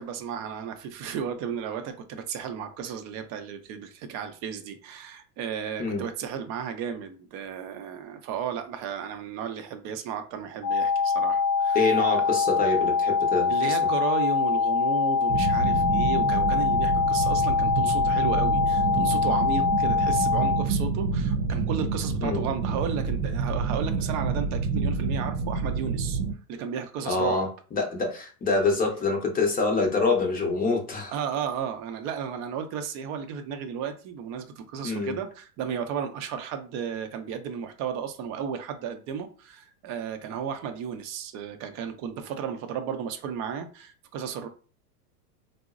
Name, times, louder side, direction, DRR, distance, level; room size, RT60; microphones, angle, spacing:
voice 1, 0.0-11.9 12.6-12.7 13.5-26.2 26.5-27.4 31.1-44.5, right 7 dB, 35° right, 0.5 m, -34 dB
sound 1, 10.6-20.6, left 5 dB, 60° left, 0.7 m, -24 dB
voice 2, 11.7-13.8 22.2-22.4 27.1-31.1 34.8-35.2, left 3 dB, 20° left, 0.7 m, -26 dB
sound 2, 15.3-26.3, right 5 dB, 85° right, 0.6 m, -28 dB
3.6 x 2.0 x 2.4 m
hypercardioid pair, 115°, 49 cm